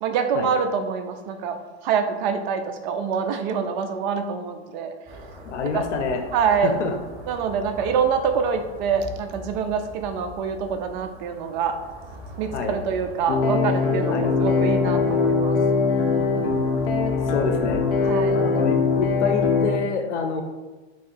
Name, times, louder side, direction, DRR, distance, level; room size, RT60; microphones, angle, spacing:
voice 1, 0.0-4.9 5.7-5.8 6.3-6.8 7.3-11.8 12.4-15.6 18.0-18.4, right 6 dB, 40° right, 7 dB, 0.5 m, -25 dB
sound 1, 5.1-19.6, equal, 15° right, 0.9 m, -42 dB
voice 2, 5.5-6.2 6.6-6.9 12.5-12.8 14.1-14.3 17.3-17.8 18.3-20.4, left 5 dB, 85° left, 5 dB, 0.7 m, -27 dB
sound 2, 13.3-19.8, left 4 dB, 50° left, 0.8 m, -21 dB
3.7 x 3.0 x 4.5 m, 1.2 s
supercardioid pair, 145°, 35 cm